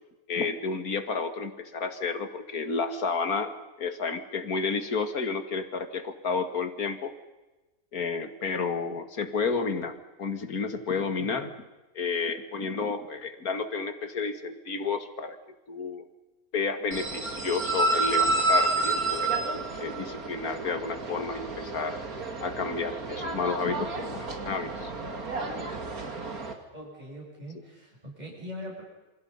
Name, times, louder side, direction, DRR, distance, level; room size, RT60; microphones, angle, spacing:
voice 1, 0.3-7.1 7.9-11.5 11.9-15.4 15.7-16.1 16.5-19.4 19.8-22.0 22.4-24.9 27.5-27.6, left 4 dB, 55° left, 8 dB, 2.4 m, -31 dB
sound 1, 16.9-26.5, right 2 dB, 55° right, 2.9 m, -30 dB
voice 2, 26.7-28.8, equal, 25° right, -2 dB, 7.7 m, -41 dB
28.0 x 27.0 x 5.6 m, 1.1 s
omnidirectional pair, 1.9 m